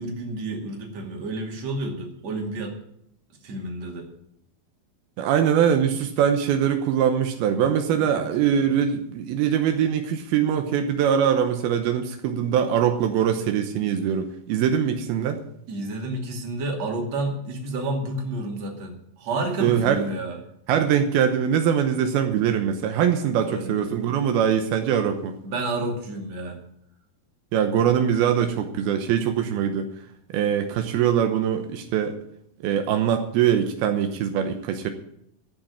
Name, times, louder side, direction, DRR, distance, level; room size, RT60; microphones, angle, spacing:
voice 1, 0.0-2.8 3.4-4.1 8.0-8.7 15.7-20.4 23.5-23.9 25.4-26.6, right 2 dB, 50° right, 1 dB, 3.4 m, -30 dB
voice 2, 5.2-15.4 19.6-20.0 20.7-25.3 27.5-29.9 30.3-32.2 32.6-34.9, right 8 dB, 85° right, 6 dB, 2.8 m, -22 dB
14.5 x 6.4 x 8.5 m, 0.74 s
omnidirectional pair, 4.3 m